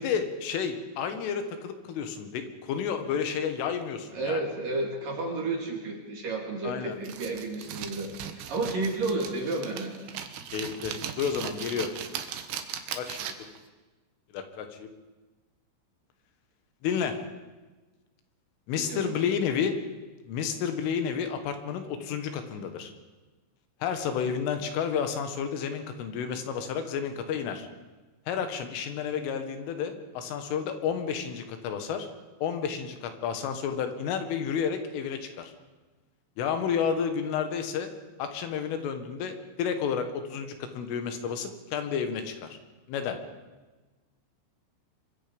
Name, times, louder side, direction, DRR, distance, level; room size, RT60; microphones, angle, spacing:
voice 1, 0.0-4.4 6.6-7.0 10.5-11.9 12.9-13.4 14.3-14.9 16.8-17.2 18.7-19.8 20.3-22.9 23.8-27.7 28.3-32.1 32.4-35.5 36.4-37.9 38.2-42.5 42.9-43.2, left 7 dB, 80° left, 7 dB, 4.1 m, -31 dB
voice 2, 4.1-9.9 18.7-19.1, right 2 dB, 50° right, 1 dB, 3.9 m, -32 dB
sound 1, 7.0-13.6, right 9 dB, 70° right, 3.0 m, -38 dB
24.5 x 23.5 x 5.2 m, 1.2 s
omnidirectional pair, 5.8 m